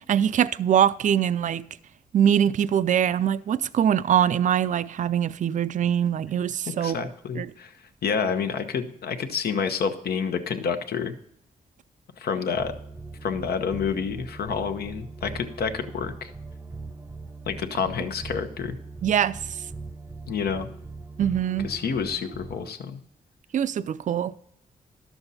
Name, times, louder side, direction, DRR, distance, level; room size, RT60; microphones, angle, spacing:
voice 1, 0.1-1.6 2.1-7.1 7.3-7.5 19.0-19.4 21.2-21.7 23.5-24.4, right 9 dB, 50° right, 0.4 m, -23 dB
voice 2, 6.8-7.8 8.0-11.1 12.2-12.7 13.2-16.3 17.5-18.8 20.3-20.7 21.6-23.0, left 6 dB, 80° left, 0.9 m, -28 dB
sound 1, 12.5-22.7, right 3 dB, 15° right, 0.7 m, -40 dB
11.5 x 7.0 x 4.1 m
cardioid pair, 90°, 16 cm